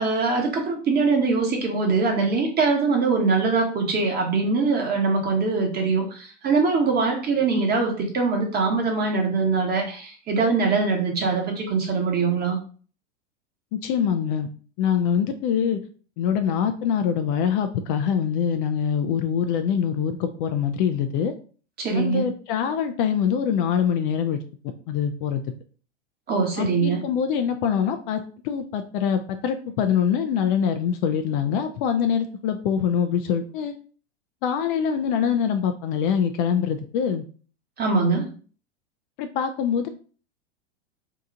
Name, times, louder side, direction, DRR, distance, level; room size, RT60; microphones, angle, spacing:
voice 1, 0.0-12.6 21.8-22.2 26.3-27.0 37.8-38.3, right 4 dB, 25° right, 2 dB, 1.1 m, -22 dB
voice 2, 13.7-14.5 14.8-15.8 16.2-21.3 21.9-24.4 24.9-25.4 26.6-33.7 34.4-37.2 39.2-39.9, left 8 dB, 50° left, 8 dB, 0.4 m, -24 dB
2.8 x 2.3 x 3.8 m, 0.40 s
hypercardioid pair, 105°, 35 cm